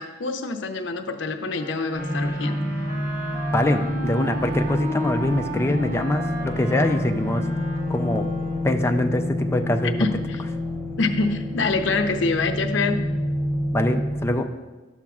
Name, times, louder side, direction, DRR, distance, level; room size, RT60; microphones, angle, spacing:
voice 1, 0.0-2.6 10.0-10.4 11.0-13.1, left 3 dB, 70° left, 6 dB, 0.6 m, -25 dB
Wind instrument woodwind instrument, 1.5-8.8, right 1 dB, 50° right, 2.0 m, -35 dB
sound 1, 1.9-14.3, left 1 dB, 15° right, 1.0 m, -28 dB
voice 2, 3.5-7.5 7.9-8.3 8.6-9.9 13.7-14.5, left 1 dB, 15° left, 4 dB, 0.4 m, -23 dB
11.5 x 7.2 x 2.4 m, 1.2 s
head